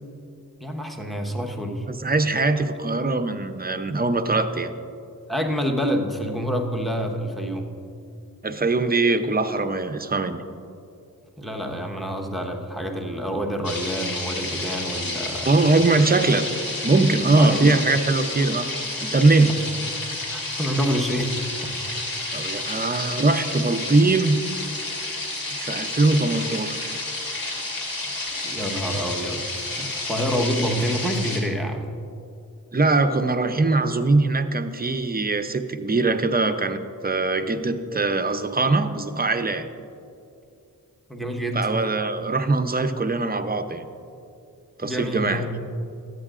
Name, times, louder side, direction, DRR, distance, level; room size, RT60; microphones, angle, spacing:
voice 1, 0.6-1.9 5.3-7.7 11.4-15.5 17.3-17.8 19.5-19.6 20.3-21.3 28.3-32.0 41.1-41.7 44.8-45.9, equal, ahead, 2 dB, 1.1 m, -27 dB
voice 2, 1.9-4.7 8.4-10.4 15.5-16.4 16.8-18.7 19.0-19.6 22.3-24.4 25.6-27.0 32.7-39.7 41.5-43.9 44.8-45.4, right 3 dB, 25° right, 9 dB, 0.6 m, -21 dB
sound 1, 13.6-31.4, left 2 dB, 70° left, 2.0 m, -30 dB
13.5 x 9.0 x 2.5 m, 2.5 s
cardioid pair, 45°, 36 cm